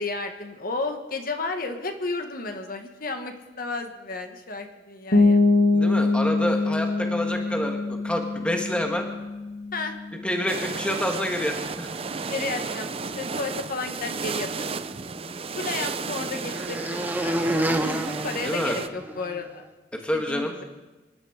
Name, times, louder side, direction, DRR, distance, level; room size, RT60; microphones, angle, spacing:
voice 1, 0.0-5.4 9.7-9.9 12.3-14.5 15.5-19.6 20.3-20.6, left 3 dB, 50° left, 5 dB, 1.6 m, -32 dB
sound 1, 5.1-10.7, left 3 dB, 70° left, 2.0 m, -24 dB
voice 2, 5.7-9.1 10.2-12.3 18.4-18.8 19.9-20.5, equal, 5° left, 3 dB, 1.6 m, -28 dB
sound 2, 10.5-18.9, right 4 dB, 30° right, 0.6 m, -33 dB
sound 3, 14.8-19.4, right 1 dB, 10° right, 1.0 m, -30 dB
25.0 x 11.5 x 5.0 m, 1.1 s
head